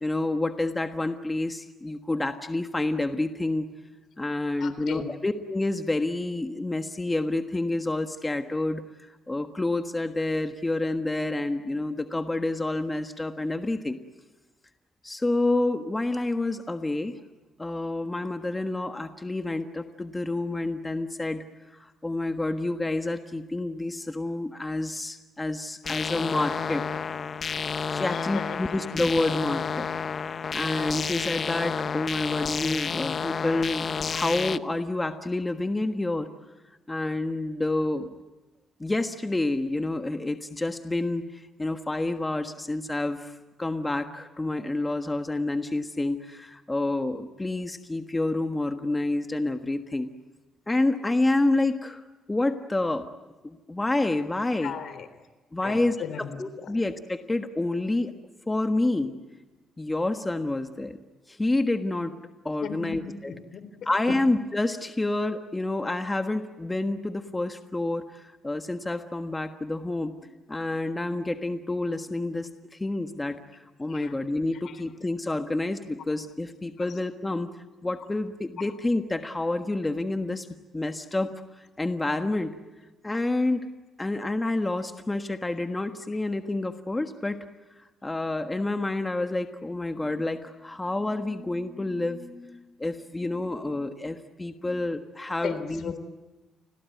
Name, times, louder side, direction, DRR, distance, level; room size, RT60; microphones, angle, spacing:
voice 1, 0.0-3.6 4.2-8.8 9.3-14.0 15.0-17.1 17.6-21.4 21.7-27.0 27.9-29.9 30.2-36.3 36.9-38.1 38.8-50.1 50.7-52.0 52.3-53.1 53.4-54.7 55.5-58.1 58.5-59.1 59.8-61.0 61.3-62.1 62.4-63.3 63.8-70.1 70.5-73.4 73.8-77.5 77.8-80.5 80.7-82.5 83.0-83.6 84.0-87.4 88.0-95.9, left 2 dB, 15° left, 6 dB, 1.5 m, -28 dB
voice 2, 4.6-5.1 28.1-28.6 54.6-55.1 55.6-56.7 62.6-64.2 73.9-74.1 74.6-74.8 76.8-77.0 95.4-96.0, left 7 dB, 70° left, 12 dB, 3.7 m, -37 dB
sound 1, 25.8-34.6, left 6 dB, 45° left, 0.8 m, -30 dB
29.5 x 21.5 x 9.4 m, 1.1 s
cardioid pair, 90°, 0 cm